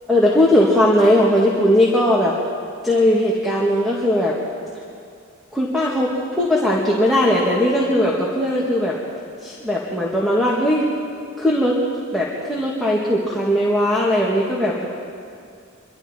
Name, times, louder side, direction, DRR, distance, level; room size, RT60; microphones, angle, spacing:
voice 1, 0.1-2.3 2.8-4.4 5.5-9.0 9.4-10.9 11.4-11.8 12.1-14.9, left 1 dB, ahead, -5 dB, 2.2 m, -18 dB
25.5 x 24.0 x 4.6 m, 2.4 s
head